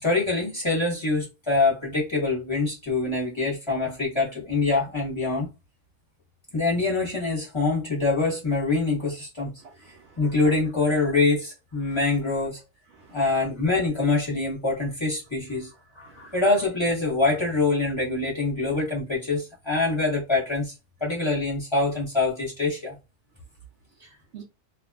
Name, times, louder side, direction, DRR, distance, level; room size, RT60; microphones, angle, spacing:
voice 1, 0.0-5.5 6.5-9.5 10.2-12.6 13.1-20.7 21.0-23.0, left 3 dB, 20° left, 0.9 m, -25 dB
voice 2, 9.6-10.2 11.8-12.0 12.9-13.2 16.0-16.3 24.0-24.4, right 8 dB, 70° right, 0.6 m, -49 dB
2.6 x 2.3 x 2.3 m
omnidirectional pair, 1.7 m